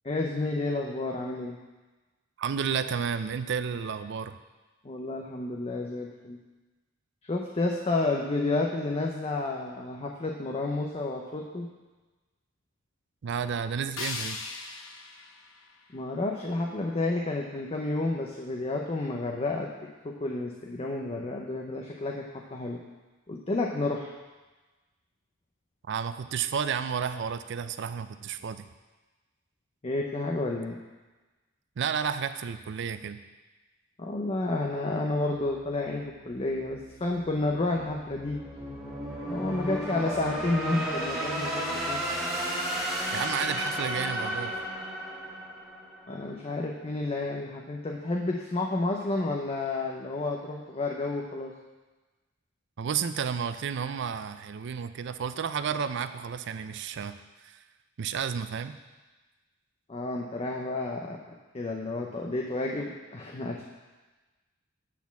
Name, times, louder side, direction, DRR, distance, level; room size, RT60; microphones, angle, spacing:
voice 1, 0.0-1.6 4.8-6.4 7.2-11.7 15.9-19.7 20.0-22.8 23.3-24.1 29.8-30.8 34.0-38.4 39.3-42.1 46.1-51.5 59.9-61.2 61.5-63.6, left 2 dB, 30° left, 0 dB, 0.6 m, -30 dB
voice 2, 2.4-4.4 13.2-14.4 25.9-28.6 31.8-33.2 43.1-44.6 52.8-57.2 57.4-57.6 58.0-58.7, right 7 dB, 60° right, 11 dB, 0.4 m, -31 dB
sound 1, 14.0-16.9, left 4 dB, 85° left, 0.8 m, -40 dB
sound 2, 35.5-46.3, right 1 dB, ahead, 1.4 m, -34 dB
8.4 x 4.2 x 6.9 m, 1.2 s
head